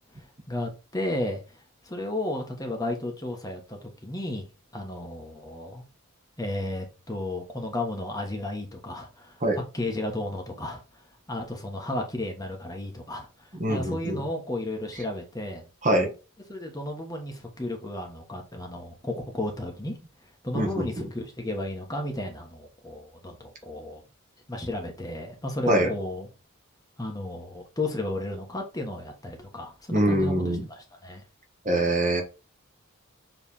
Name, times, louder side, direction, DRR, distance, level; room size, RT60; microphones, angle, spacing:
voice 1, 0.1-4.5 4.7-5.8 6.4-9.4 9.7-15.7 16.5-19.9 20.2-24.0 24.5-26.3 27.0-31.2, left 1 dB, 15° left, 1.2 m, -33 dB
voice 2, 13.6-14.2 15.8-16.1 20.5-21.0 25.7-25.9 29.9-30.6 31.6-32.2, right 1 dB, 35° right, 1.4 m, -24 dB
7.3 x 3.4 x 4.2 m
head